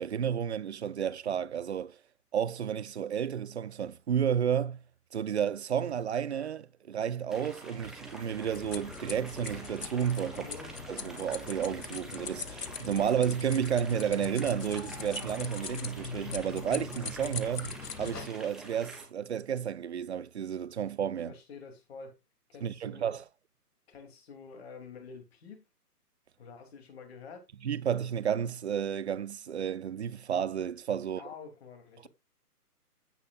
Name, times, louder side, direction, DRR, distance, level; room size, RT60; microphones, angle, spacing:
voice 1, 0.0-2.0 2.3-4.8 5.1-10.5 10.9-21.3 22.6-23.2 27.6-31.2, right 8 dB, 45° right, 0.6 m, -32 dB
sound 1, 7.3-19.1, right 1 dB, ahead, 1.5 m, -47 dB
sound 2, 8.4-18.3, left 6 dB, 85° left, 1.1 m, -41 dB
voice 2, 10.3-10.8 21.3-22.2 22.5-23.2 23.9-25.6 26.4-27.5 31.1-32.1, left 5 dB, 40° left, 3.1 m, -48 dB
15.5 x 5.4 x 2.5 m
figure-of-eight pair, 145°, 47 cm